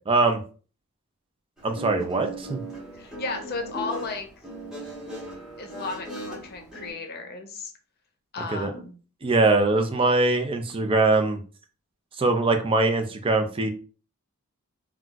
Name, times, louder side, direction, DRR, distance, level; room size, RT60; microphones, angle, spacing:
voice 1, 0.1-0.4 1.6-2.6 8.5-8.7 9.2-11.4 12.2-13.7, right 3 dB, 25° right, 6 dB, 0.4 m, -22 dB
Guitar, 1.6-6.9, right 1 dB, 5° right, 0.8 m, -38 dB
voice 2, 2.9-4.3 5.6-7.7 8.3-8.9, left 3 dB, 45° left, 4 dB, 0.6 m, -34 dB
2.3 x 2.3 x 3.8 m, 0.39 s
head